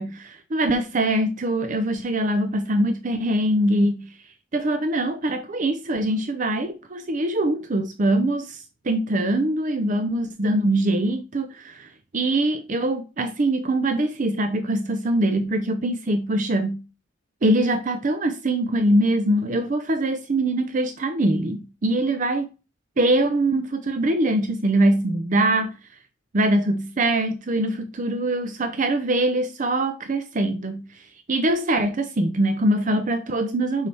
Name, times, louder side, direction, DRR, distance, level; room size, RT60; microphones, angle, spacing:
voice 1, 0.0-4.1 4.5-16.8 17.4-22.4 23.0-25.7 26.3-30.8 31.3-33.9, right 1 dB, 40° right, 0.6 m, -23 dB
6.9 x 4.7 x 3.3 m
head